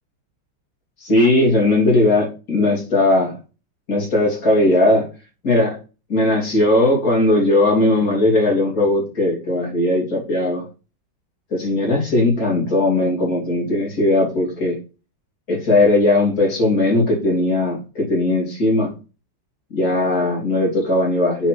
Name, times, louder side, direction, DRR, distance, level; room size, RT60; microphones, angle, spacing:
voice 1, 1.0-3.4 3.9-5.1 5.4-5.8 6.1-10.6 11.5-14.8 15.5-18.9 19.7-21.5, left 2 dB, 45° left, -3 dB, 3.8 m, -18 dB
9.5 x 4.3 x 4.9 m, 0.33 s
omnidirectional pair, 2.2 m